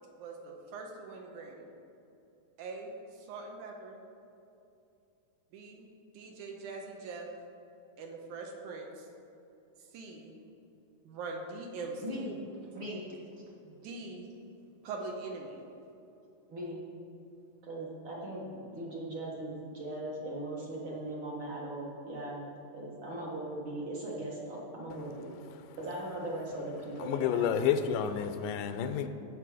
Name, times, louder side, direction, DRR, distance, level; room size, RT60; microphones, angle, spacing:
voice 1, 0.2-1.7 2.6-2.9 3.3-4.0 5.5-5.9 6.1-7.3 8.0-9.1 9.9-10.3 11.0-12.3 13.7-14.3 14.8-15.6, right 3 dB, 75° right, 1 dB, 2.3 m, -42 dB
voice 2, 12.0-12.3 12.7-13.0 16.5-16.8 17.6-22.4 22.7-25.3 25.8-27.5, right 1 dB, 50° right, -4 dB, 1.8 m, -39 dB
voice 3, 27.0-29.1, left 8 dB, 85° left, 9 dB, 2.2 m, -30 dB
16.0 x 6.6 x 4.9 m, 2.7 s
omnidirectional pair, 3.9 m